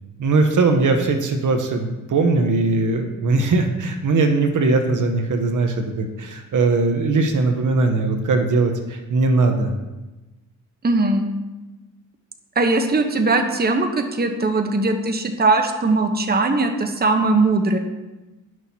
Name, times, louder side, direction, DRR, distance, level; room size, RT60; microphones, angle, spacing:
voice 1, 0.2-9.7, right 3 dB, 60° right, 5 dB, 1.0 m, -20 dB
voice 2, 10.8-11.3 12.6-17.8, right 3 dB, 25° right, 5 dB, 1.0 m, -20 dB
11.0 x 6.2 x 2.8 m, 1.1 s
cardioid pair, 60°, 34 cm